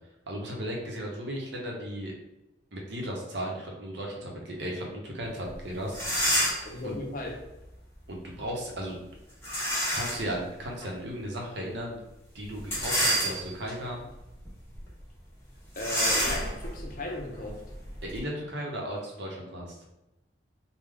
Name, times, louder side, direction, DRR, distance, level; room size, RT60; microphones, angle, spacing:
voice 1, 0.3-2.1 2.7-6.0 6.8-6.9 8.1-9.0 9.9-12.0 12.3-14.0 18.0-19.8, equal, 60° right, -1 dB, 0.8 m, -35 dB
sound 1, 5.5-5.6 5.9-6.8 9.4-10.3 10.8-10.9 12.6-13.7 14.3-14.5 14.7-14.9 15.7-18.2, equal, 15° left, 1.2 m, -28 dB
voice 2, 6.6-7.3 15.8-17.6, left 1 dB, 45° left, 0 dB, 0.7 m, -36 dB
3.5 x 2.2 x 3.4 m, 0.94 s
head